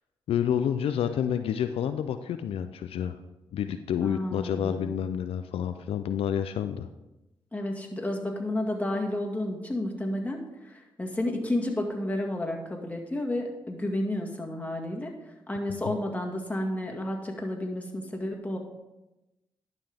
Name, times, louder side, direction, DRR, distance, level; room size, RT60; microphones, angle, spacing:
voice 1, 0.3-3.2 3.5-6.9 15.9-16.0, left 9 dB, 80° left, 9 dB, 0.4 m, -29 dB
voice 2, 4.0-5.0 7.5-15.1 15.5-18.6, left 1 dB, 15° left, 1 dB, 1.9 m, -31 dB
11.0 x 5.7 x 3.5 m, 0.98 s
cardioid pair, 55°, 10 cm